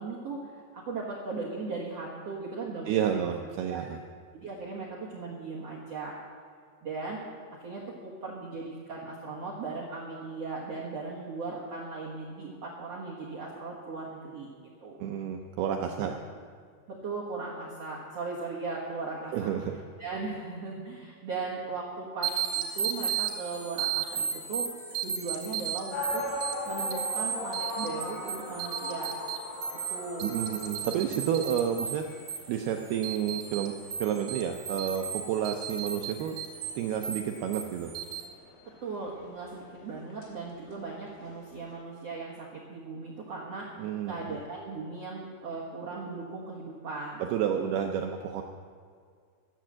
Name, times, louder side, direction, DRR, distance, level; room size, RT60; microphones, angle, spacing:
voice 1, 0.0-3.2 3.7-3.8 4.3-6.1 6.8-7.2 7.6-14.5 14.8-15.0 16.0-16.1 16.9-19.5 20.0-24.7 25.0-26.2 26.6-29.1 29.7-30.4 38.8-43.7 44.1-47.2, right 3 dB, 65° right, -5 dB, 1.6 m, -38 dB
voice 2, 2.9-4.0 15.0-16.1 19.3-19.8 30.2-32.0 32.5-33.7 34.0-36.4 36.8-37.9 43.8-44.2 47.2-48.4, right 9 dB, 85° right, 4 dB, 2.2 m, -30 dB
sound 1, 22.2-38.2, right 7 dB, 45° right, 3.4 m, -35 dB
sound 2, 25.9-41.8, left 2 dB, 60° left, 3.9 m, -41 dB
12.5 x 10.0 x 7.4 m, 2.1 s
omnidirectional pair, 5.3 m